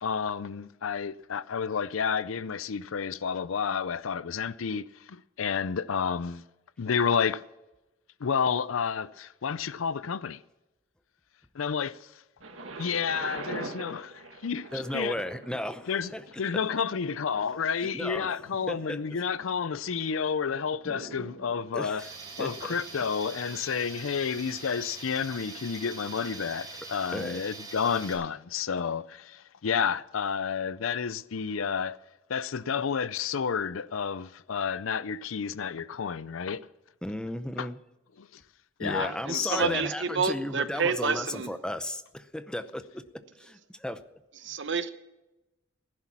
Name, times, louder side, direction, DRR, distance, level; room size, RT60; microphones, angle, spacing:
voice 1, 0.0-6.4 6.8-7.4 8.2-10.4 11.5-12.1 12.8-15.2 15.9-16.1 16.4-22.0 22.4-32.0 32.3-36.6 37.6-37.7 38.2-38.3 38.8-39.8, left 6 dB, 85° left, 0.5 m, -30 dB
Thunder, 12.4-24.3 25.0-25.1, right 2 dB, 80° right, 1.8 m, -45 dB
voice 2, 14.7-16.3 17.8-18.4 18.7-19.0 21.7-22.0 22.4-22.8 27.1-27.4 37.0-37.8 38.8-43.0 43.4-44.0, left 1 dB, 5° left, 0.7 m, -35 dB
Tools, 22.0-28.1, right 3 dB, 20° right, 4.8 m, -43 dB
voice 3, 39.0-41.5 44.4-44.9, right 5 dB, 65° right, 1.0 m, -29 dB
16.0 x 11.0 x 6.1 m
head